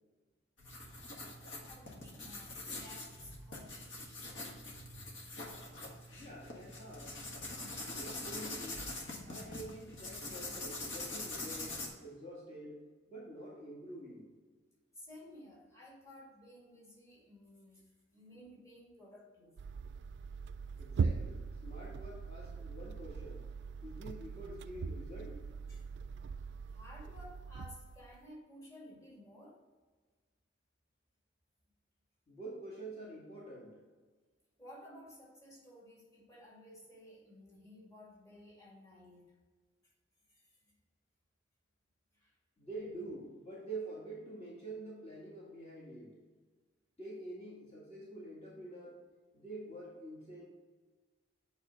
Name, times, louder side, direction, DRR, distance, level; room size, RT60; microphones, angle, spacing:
sound 1, 0.6-11.9, left 2 dB, 85° left, 1.6 m, -44 dB
voice 1, 1.6-3.9 14.9-19.6 25.7-25.9 26.7-29.6 34.6-39.2 40.3-40.8 42.1-42.3, left 1 dB, 15° left, -5 dB, 2.0 m, -55 dB
voice 2, 6.1-7.2 7.8-8.9 9.2-14.3 20.8-23.4 23.8-25.4 32.3-33.9 42.6-46.2 47.0-49.0 49.3-50.5, right 2 dB, 35° left, -6 dB, 1.7 m, -47 dB
sound 2, 19.6-28.2, right 5 dB, 65° right, 0.3 m, -40 dB
8.6 x 3.5 x 5.1 m, 1.4 s
head